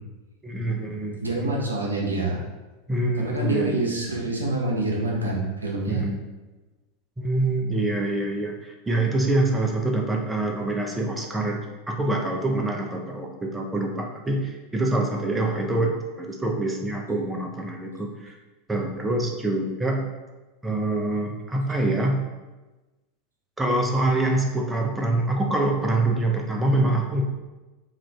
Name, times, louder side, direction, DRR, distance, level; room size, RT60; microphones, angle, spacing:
voice 1, 0.4-1.6 2.9-3.9 5.9-6.2 7.2-18.4 18.7-20.0 20.6-22.2 23.6-27.2, right 2 dB, 10° right, 1 dB, 0.4 m, -25 dB
voice 2, 1.2-2.4 3.2-6.0, right 2 dB, 85° right, -1 dB, 0.5 m, -26 dB
2.4 x 2.4 x 3.1 m, 1.2 s
figure-of-eight pair, 85°, 0 cm